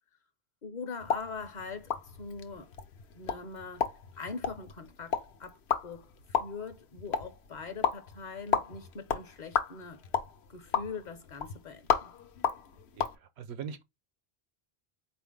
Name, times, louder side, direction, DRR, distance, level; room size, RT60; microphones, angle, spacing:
voice 1, 0.6-2.7 3.1-3.9 4.2-10.0 10.5-12.1, left 4 dB, 50° left, 0.7 m, -42 dB
sound 1, 1.0-13.2, left 7 dB, 80° left, 0.9 m, -34 dB
voice 2, 12.9-13.8, right 7 dB, 80° right, 0.9 m, -41 dB
4.4 x 2.6 x 3.6 m
omnidirectional pair, 1.1 m